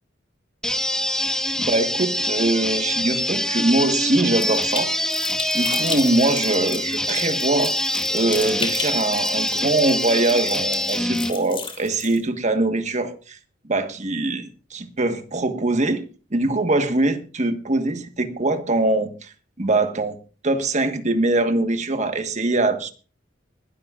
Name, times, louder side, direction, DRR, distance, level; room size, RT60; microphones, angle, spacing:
sound 1, 0.6-11.3, left 1 dB, 5° left, 1.2 m, -24 dB
voice 1, 1.6-4.9 5.5-7.7 8.1-13.4 13.6-16.0 16.3-20.2 20.4-22.9, right 2 dB, 40° right, 7 dB, 1.4 m, -22 dB
sound 2, 4.4-12.2, left 5 dB, 30° left, 3.1 m, -35 dB
21.5 x 12.5 x 2.5 m, 0.36 s
head